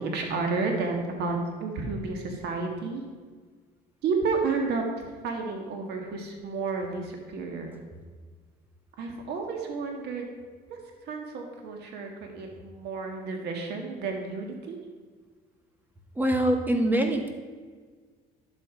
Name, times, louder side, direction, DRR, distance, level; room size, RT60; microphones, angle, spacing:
voice 1, 0.0-3.0 4.0-7.7 9.0-10.3 10.7-14.8, right 4 dB, 75° right, 2 dB, 1.8 m, -31 dB
voice 2, 16.1-17.3, right 1 dB, 10° right, 3 dB, 1.7 m, -24 dB
11.0 x 7.8 x 5.1 m, 1.5 s
cardioid pair, 110°, 17 cm